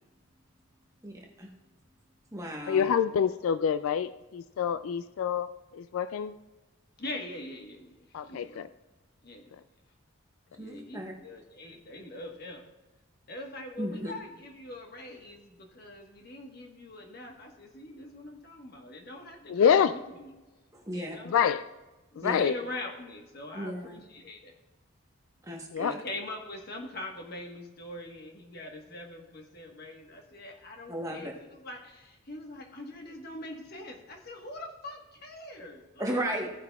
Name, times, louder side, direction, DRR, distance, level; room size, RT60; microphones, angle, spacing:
voice 1, 1.0-1.5 2.3-2.9 10.6-11.1 13.8-14.1 20.7-21.2 22.2-22.5 23.5-24.0 25.4-26.0 30.9-31.3 36.0-36.5, right 1 dB, 15° right, 0 dB, 1.1 m, -35 dB
voice 2, 2.7-6.3 8.1-8.7 19.5-19.9 21.3-21.6 22.2-22.6 25.7-26.0, left 7 dB, 75° left, 13 dB, 0.3 m, -26 dB
voice 3, 7.0-8.6 9.2-9.5 10.6-12.6 13.3-20.3 20.9-21.4 22.1-24.5 25.8-36.2, left 1 dB, 45° left, 2 dB, 1.3 m, -43 dB
15.0 x 9.4 x 2.3 m, 1.1 s
head